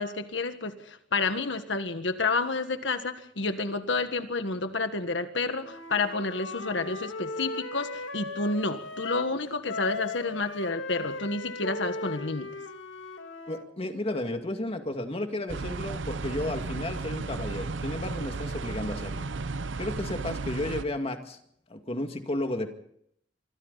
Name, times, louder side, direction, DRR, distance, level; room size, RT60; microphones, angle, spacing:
voice 1, 0.0-12.5, left 3 dB, 70° left, 9 dB, 1.6 m, -30 dB
Wind instrument woodwind instrument, 5.6-9.3 9.7-13.7, left 3 dB, 85° left, 1.9 m, -37 dB
voice 2, 13.5-19.3 19.8-21.4 21.7-22.7, left 1 dB, 30° left, 5 dB, 2.3 m, -33 dB
sound 1, 15.5-20.8, right 3 dB, 75° right, 0.7 m, -34 dB
25.5 x 25.5 x 4.1 m, 0.71 s
head